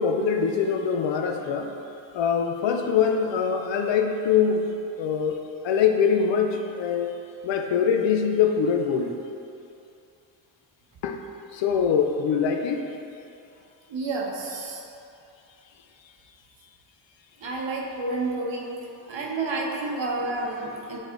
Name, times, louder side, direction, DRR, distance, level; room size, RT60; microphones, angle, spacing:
voice 1, 0.0-1.7 2.1-7.2 7.4-9.2 11.0-11.2 11.5-12.8, left 6 dB, 70° left, 4 dB, 0.7 m, -23 dB
voice 2, 13.9-14.8 17.4-18.7 19.1-21.0, right 3 dB, 70° right, -1 dB, 1.3 m, -30 dB
9.1 x 3.3 x 3.9 m, 2.7 s
cardioid pair, 90°, 47 cm